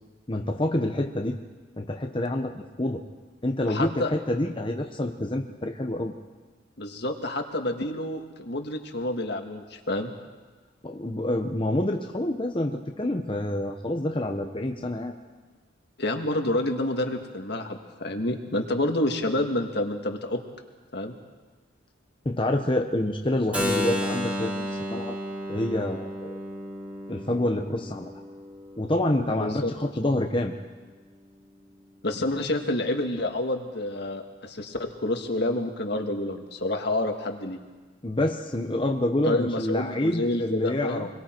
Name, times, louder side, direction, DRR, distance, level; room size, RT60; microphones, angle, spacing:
voice 1, 0.3-1.4 1.8-3.0 3.4-6.1 10.8-15.1 22.2-25.2 25.5-26.3 27.1-28.1 28.8-30.5 38.0-41.1, left 1 dB, 25° left, 3 dB, 1.0 m, -27 dB
voice 2, 3.7-4.1 6.8-10.1 16.0-20.4 20.9-21.1 29.4-29.7 32.0-37.6 39.3-41.1, left 1 dB, 60° left, 4 dB, 1.9 m, -28 dB
Keyboard (musical), 23.5-29.4, left 1 dB, 5° right, 2.8 m, -32 dB
27.5 x 22.0 x 4.6 m, 1.4 s
head